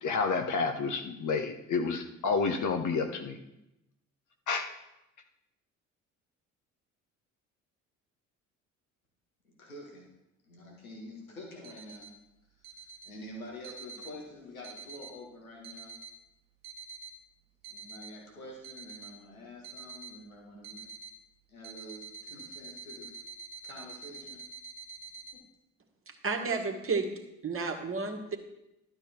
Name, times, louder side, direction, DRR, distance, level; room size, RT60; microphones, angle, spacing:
voice 1, 0.0-3.4 4.5-4.7, left 4 dB, 45° left, 6 dB, 1.1 m, -30 dB
voice 2, 9.4-10.1 10.4-12.1 12.6-15.9 17.7-20.9 21.5-23.2 23.6-24.4 25.3-25.5, left 1 dB, 85° left, -1 dB, 1.9 m, -47 dB
sound 1, 11.6-12.1 12.6-13.1 13.6-14.1 14.6-15.1 15.6-16.1 16.6-17.1 17.6-18.1 18.6-19.1 19.6-20.1 20.6-21.1 21.6-25.3, right 4 dB, 85° right, 1.0 m, -46 dB
voice 3, 26.2-27.1 27.4-28.4, right 4 dB, 30° right, 2 dB, 1.7 m, -31 dB
12.0 x 6.7 x 4.5 m, 0.89 s
figure-of-eight pair, 55°, 41 cm